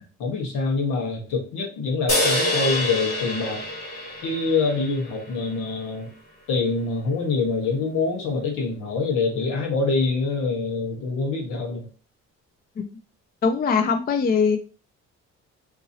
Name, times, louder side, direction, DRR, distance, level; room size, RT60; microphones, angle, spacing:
voice 1, 0.2-3.6 4.2-6.1 6.5-11.9, left 3 dB, 90° left, 0 dB, 1.3 m, -25 dB
sound 1, 2.1-5.6, left 1 dB, 55° left, 1.6 m, -26 dB
voice 2, 13.4-14.6, left 5 dB, 30° left, 8 dB, 0.4 m, -21 dB
3.6 x 2.9 x 2.7 m, 0.35 s
cardioid pair, 90°, 30 cm